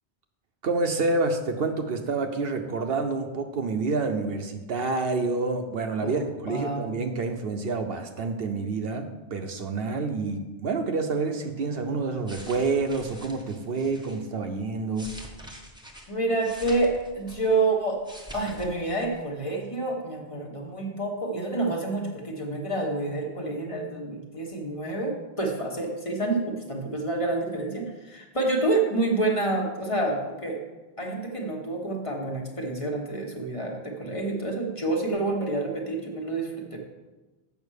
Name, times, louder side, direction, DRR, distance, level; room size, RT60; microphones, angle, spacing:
voice 1, 0.6-15.1, right 3 dB, 65° right, 6 dB, 0.9 m, -28 dB
voice 2, 6.0-6.8 16.1-18.0 18.3-30.6 31.0-36.8, right 2 dB, 30° left, 0 dB, 1.2 m, -28 dB
sound 1, 12.0-14.2 14.7-17.6 17.9-18.7 19.0-19.2, equal, 5° right, 1.0 m, -45 dB
7.1 x 5.6 x 6.4 m, 1.2 s
omnidirectional pair, 1.1 m